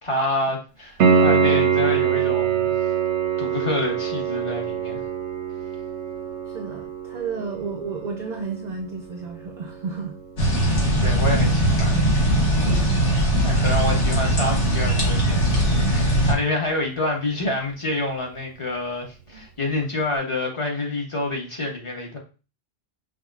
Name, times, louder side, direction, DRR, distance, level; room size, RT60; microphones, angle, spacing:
voice 1, 0.0-2.7 3.4-5.0 11.0-12.0 13.0-15.4 15.9-22.2, left 2 dB, 30° left, 0.8 m, -27 dB
Piano, 1.0-11.7 15.0-15.1, right 7 dB, 85° right, 0.9 m, -25 dB
voice 2, 6.5-10.2, right 5 dB, 55° right, 0.5 m, -32 dB
sound 1, 10.4-16.3, right 1 dB, 85° left, 1.5 m, -20 dB
5.8 x 2.1 x 2.3 m
omnidirectional pair, 1.2 m